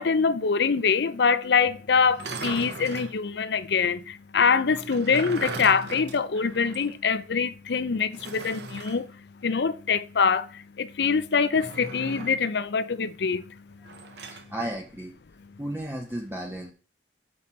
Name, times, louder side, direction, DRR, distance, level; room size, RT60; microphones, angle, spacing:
voice 1, 0.0-13.9, left 5 dB, 65° left, 0.5 m, -24 dB
sound 1, 2.1-3.2 4.7-6.9 7.2-7.3 8.1-9.0 11.5-12.5 13.8-14.5, right 2 dB, 65° right, 1.0 m, -38 dB
voice 2, 14.2-15.1 15.6-16.7, right 1 dB, 10° right, 0.9 m, -34 dB
6.6 x 5.6 x 4.3 m
head